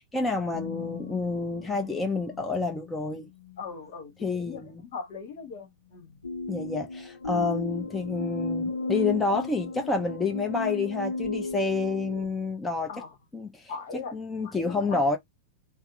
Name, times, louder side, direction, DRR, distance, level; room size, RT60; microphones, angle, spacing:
voice 1, 0.1-3.3 4.2-4.8 6.5-12.9 13.3-13.7 14.1-15.2, left 3 dB, 10° left, 0.7 m, -29 dB
sound 1, 0.5-3.7 6.2-12.3, left 3 dB, 75° left, 0.5 m, -35 dB
voice 2, 3.6-6.2 7.3-7.7 12.9-13.2 13.7-15.2, left 5 dB, 55° left, 1.1 m, -40 dB
3.4 x 2.0 x 2.9 m
figure-of-eight pair, 95°, 0 cm